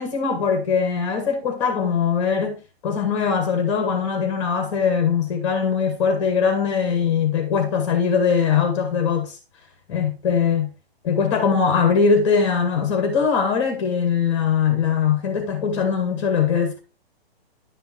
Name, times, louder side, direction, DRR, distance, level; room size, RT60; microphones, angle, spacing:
voice 1, 0.0-2.6 2.8-9.4 9.9-10.7 11.0-16.8, left 6 dB, 30° left, 1.9 m, -21 dB
11.5 x 5.5 x 4.4 m
hypercardioid pair, 170°, 31 cm